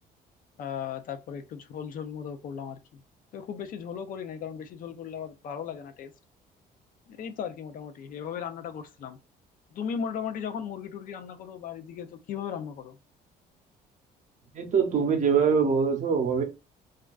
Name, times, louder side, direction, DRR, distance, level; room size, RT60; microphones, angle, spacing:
voice 1, 0.6-3.0 3.3-6.1 7.1-9.2 9.7-13.0, left 7 dB, 55° left, 0.4 m, -36 dB
voice 2, 14.5-16.4, right 6 dB, 45° right, 0.7 m, -23 dB
2.4 x 2.2 x 2.3 m
cardioid pair, 110°, 17 cm